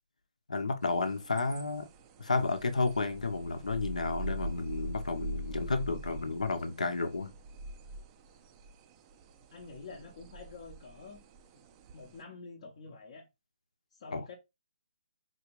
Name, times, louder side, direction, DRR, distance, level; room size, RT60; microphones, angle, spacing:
voice 1, 0.5-1.9 2.2-7.3 14.1-14.2, left 3 dB, 75° left, 0.8 m, -32 dB
sound 1, 0.8-12.2, right 1 dB, 25° right, 0.5 m, -44 dB
voice 2, 9.5-11.2 11.5-11.6 11.9-13.3 13.9-14.3, left 4 dB, 45° left, 0.8 m, -48 dB
4.2 x 2.5 x 3.1 m
figure-of-eight pair, 140°, 4 cm